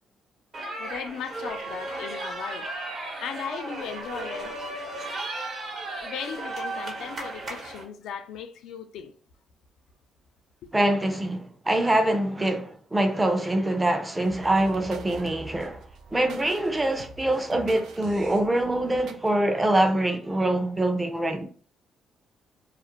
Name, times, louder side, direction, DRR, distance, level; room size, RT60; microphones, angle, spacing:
sound 1, 0.5-7.8, right 2 dB, 55° right, 0.8 m, -35 dB
voice 1, 0.8-2.7 3.2-4.6 6.0-9.1 10.6-10.7, left 7 dB, 85° left, 0.4 m, -37 dB
voice 2, 10.7-21.5, right 1 dB, 15° right, 0.5 m, -24 dB
sound 2, 14.2-19.3, right 3 dB, 80° right, 0.3 m, -46 dB
2.4 x 2.0 x 2.9 m
cardioid pair, 90°, 0 cm